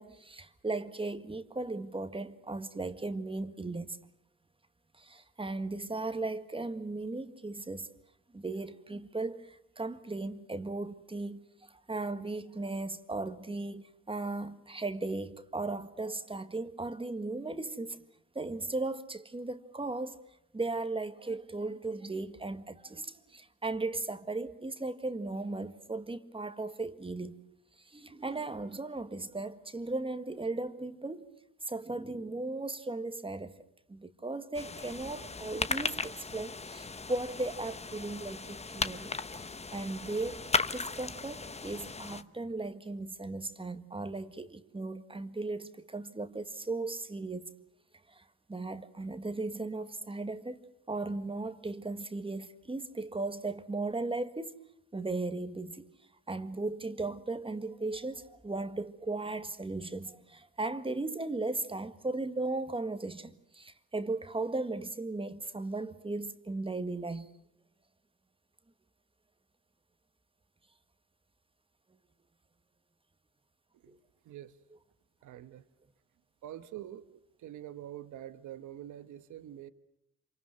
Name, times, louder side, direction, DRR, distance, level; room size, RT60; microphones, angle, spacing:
voice 1, 0.0-4.0 5.0-7.9 8.3-18.0 18.4-20.2 20.5-27.4 27.9-31.3 31.7-33.6 33.9-39.5 39.7-40.5 40.7-47.5 48.1-50.6 50.9-54.5 54.9-55.8 56.3-67.3 73.9-74.0, right 2 dB, 15° right, 1.8 m, -37 dB
sound 1, 34.5-42.2, left 4 dB, 20° left, 1.1 m, -36 dB
voice 2, 74.2-74.6 75.2-75.7 76.4-79.7, right 12 dB, 75° right, 1.3 m, -46 dB
27.5 x 25.5 x 6.6 m
cardioid pair, 90°, 30 cm